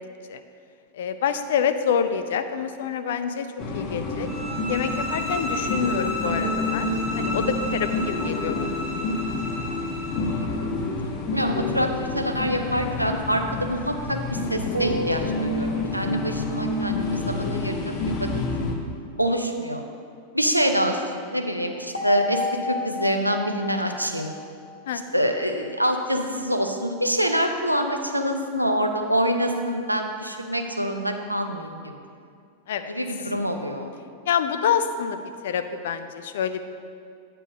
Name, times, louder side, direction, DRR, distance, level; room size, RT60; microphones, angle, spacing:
voice 1, 0.9-3.5 3.7-4.3 4.7-8.8 24.9-25.0 32.7-32.9 34.3-35.2 35.4-36.7, left 7 dB, 60° left, 9 dB, 0.4 m, -27 dB
sound 1, 3.6-18.7, left 2 dB, 40° left, 0.9 m, -28 dB
sound 2, 4.3-10.4, left 1 dB, 10° left, 2.2 m, -32 dB
voice 2, 11.3-18.3 19.2-19.8 20.3-24.3 25.1-32.0 32.9-33.9, equal, 90° right, 4 dB, 0.6 m, -26 dB
sound 3, 14.7-16.3 21.9-25.3, left 2 dB, 85° left, 0.9 m, -32 dB
8.9 x 4.5 x 5.2 m, 2.3 s
figure-of-eight pair, 90°, 0 cm